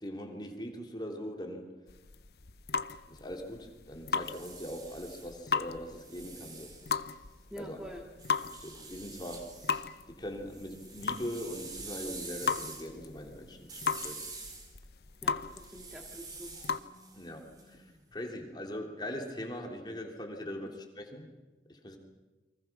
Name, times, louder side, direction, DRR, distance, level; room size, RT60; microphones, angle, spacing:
voice 1, 0.0-1.7 3.1-6.7 7.6-7.8 8.5-9.5 10.0-14.2 17.1-21.3 21.7-22.0, equal, 25° left, 2 dB, 3.2 m, -41 dB
sound 1, 1.9-16.8, left 5 dB, 60° left, 0.8 m, -37 dB
sound 2, 4.0-7.5 8.2-9.8 10.2-18.1, right 3 dB, 25° right, 3.5 m, -47 dB
voice 2, 7.5-8.0 15.2-16.5, left 1 dB, 5° right, 0 dB, 2.2 m, -45 dB
29.5 x 24.0 x 6.1 m, 1.1 s
head